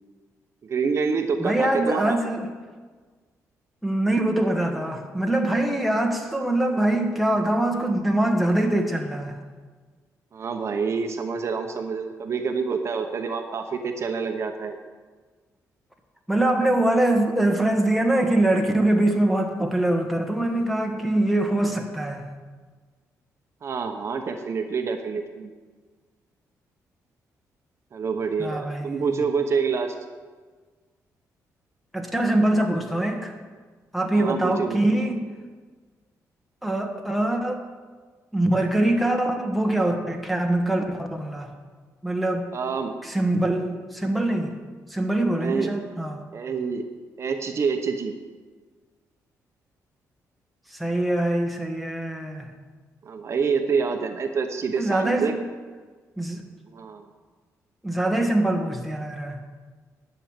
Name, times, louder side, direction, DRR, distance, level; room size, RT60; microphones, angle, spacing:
voice 1, 0.6-2.2 10.3-14.8 23.6-25.5 27.9-29.9 34.1-34.8 42.5-42.9 45.4-45.7 46.3-46.8 47.2-48.1 53.0-55.4 56.7-57.0, right 5 dB, 45° right, 6 dB, 1.0 m, -27 dB
voice 2, 1.4-2.5 3.8-9.4 16.3-22.3 28.4-29.2 31.9-33.3 33.9-35.2 36.6-37.6 38.3-41.5 42.0-42.5 43.0-44.6 44.9-46.2 50.7-52.5 54.8-55.4 56.2-56.4 57.8-59.4, right 1 dB, ahead, 2 dB, 1.5 m, -23 dB
11.0 x 6.4 x 8.9 m, 1.4 s
cardioid pair, 115°, 6 cm